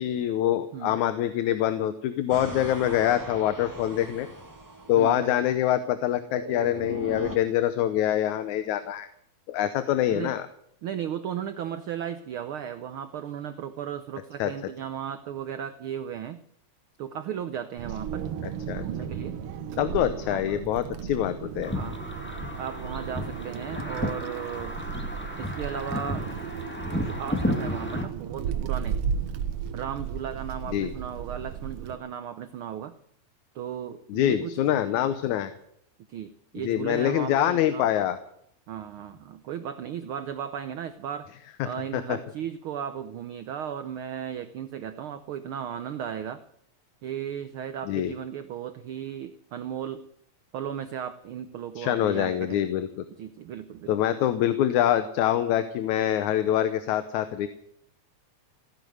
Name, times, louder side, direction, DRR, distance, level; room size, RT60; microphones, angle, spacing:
voice 1, 0.0-4.3 4.9-9.1 9.5-10.5 14.4-14.5 18.7-18.9 19.8-21.8 30.7-30.9 34.1-35.5 36.6-38.2 41.9-42.2 47.9-48.1 51.8-52.9 53.9-57.5, left 11 dB, 80° left, 11 dB, 2.2 m, -25 dB
sound 1, 2.3-7.4, right 1 dB, 10° right, 0.9 m, -40 dB
voice 2, 5.0-5.3 10.1-10.4 10.8-16.4 17.0-18.3 18.7-19.4 19.9-20.6 21.7-22.0 22.6-24.7 25.4-26.2 26.9-29.0 29.7-32.9 33.5-35.2 36.1-37.9 38.7-41.3 41.6-46.4 47.0-50.1 50.5-52.7 53.2-53.9, right 9 dB, 85° right, 10 dB, 1.1 m, -36 dB
Wind, 17.8-32.0, right 7 dB, 65° right, 1.6 m, -35 dB
sound 2, 21.6-28.0, equal, 5° left, 1.2 m, -32 dB
16.0 x 10.0 x 7.9 m, 0.70 s
omnidirectional pair, 3.4 m